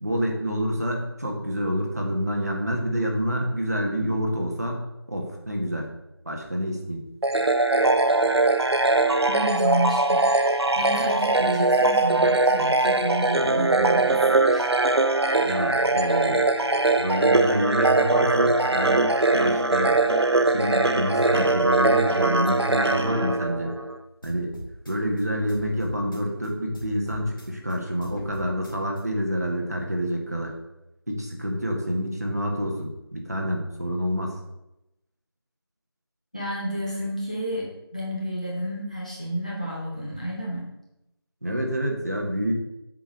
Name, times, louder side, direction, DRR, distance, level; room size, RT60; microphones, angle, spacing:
voice 1, 0.0-4.8 5.1-5.9 6.2-7.0 15.4-16.4 16.9-19.0 19.3-20.0 20.4-23.7 24.2-24.5 24.9-30.5 31.1-34.3 41.4-42.5, equal, 40° right, 1 dB, 1.5 m, -28 dB
sound 1, 7.2-24.0, right 2 dB, 80° right, 0.8 m, -21 dB
voice 2, 9.3-14.7 36.3-40.7, right 1 dB, 15° left, -5 dB, 1.2 m, -31 dB
sound 2, 24.2-26.5 26.7-29.0, equal, 55° left, 2.3 m, -41 dB
7.8 x 4.7 x 6.4 m, 0.90 s
figure-of-eight pair, 180°, 13 cm